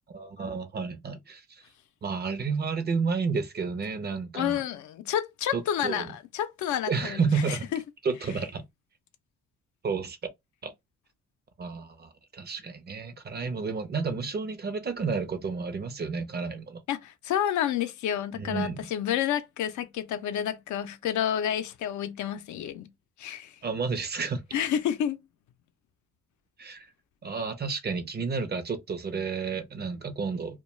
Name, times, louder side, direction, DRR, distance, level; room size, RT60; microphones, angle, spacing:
voice 1, 0.1-1.6 2.0-4.6 5.5-6.1 6.9-7.7 8.0-8.6 9.8-10.2 10.6-10.7 11.6-16.8 18.3-18.9 23.6-24.4 26.6-26.9 27.2-30.6, right 5 dB, 35° right, 0.6 m, -31 dB
voice 2, 4.3-7.8 16.9-22.9 23.2-23.5 24.5-25.2, left 10 dB, 75° left, 0.5 m, -30 dB
2.3 x 2.2 x 3.1 m
cardioid pair, 90°, 30 cm